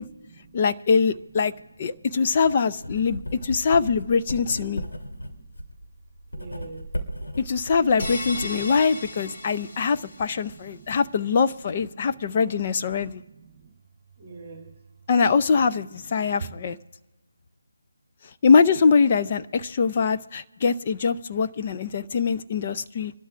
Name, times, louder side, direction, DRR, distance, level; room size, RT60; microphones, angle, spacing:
voice 1, 0.0-0.6 1.9-2.1 3.1-3.7 4.7-5.4 6.3-6.9 8.0-11.0 12.0-13.7 14.2-14.7 15.6-15.7 16.2-16.6, right 5 dB, 20° right, 2.6 m, -47 dB
voice 2, 0.5-1.5 1.8-4.8 7.4-13.2 15.1-16.8 18.4-23.1, left 5 dB, 25° left, 0.5 m, -23 dB
Writing, 2.8-8.8, equal, 80° left, 3.1 m, -35 dB
sound 1, 8.0-10.5, left 2 dB, 40° left, 1.8 m, -36 dB
27.0 x 12.5 x 2.5 m
figure-of-eight pair, 170°, 0 cm